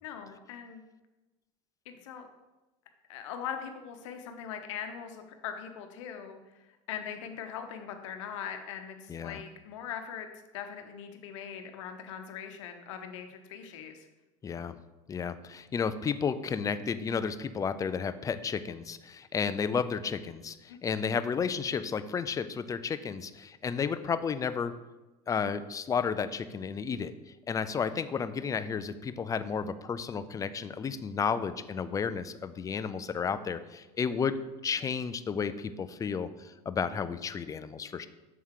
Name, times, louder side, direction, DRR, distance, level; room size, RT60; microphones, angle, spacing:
voice 1, 0.0-0.8 1.9-2.3 3.1-10.3 10.5-14.1 20.7-20.8, left 8 dB, 90° left, 6 dB, 0.8 m, -41 dB
voice 2, 9.1-9.4 14.4-14.8 15.1-24.7 25.3-27.1 27.5-34.4 34.6-38.1, left 6 dB, 20° left, 12 dB, 0.4 m, -32 dB
6.8 x 3.6 x 4.8 m, 1.1 s
supercardioid pair, 110°, 15 cm